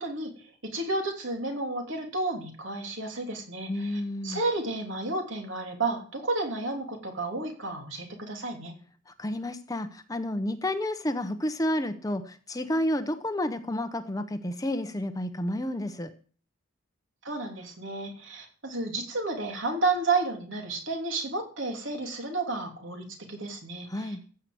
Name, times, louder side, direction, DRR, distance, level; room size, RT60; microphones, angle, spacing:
voice 1, 0.0-8.7 17.2-24.2, right 3 dB, 65° right, 3 dB, 3.1 m, -32 dB
voice 2, 3.7-4.4 9.1-16.1 23.9-24.2, left 1 dB, 15° left, 9 dB, 0.8 m, -30 dB
15.0 x 5.8 x 7.8 m, 0.43 s
head